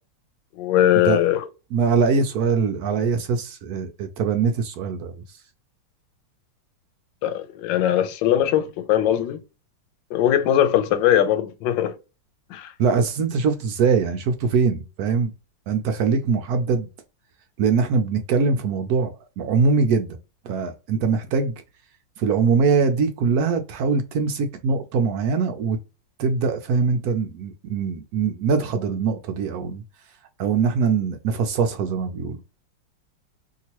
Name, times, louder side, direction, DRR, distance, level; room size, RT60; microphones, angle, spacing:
voice 1, 0.6-1.4 7.2-9.4 10.1-12.0 12.5-12.7, left 11 dB, 85° left, 1.3 m, -20 dB
voice 2, 1.7-5.1 12.8-15.3 15.7-16.9 17.6-20.2 20.4-21.5 22.2-25.8 26.2-29.8 30.4-32.4, right 5 dB, 70° right, 0.9 m, -22 dB
2.9 x 2.8 x 2.8 m
omnidirectional pair, 2.0 m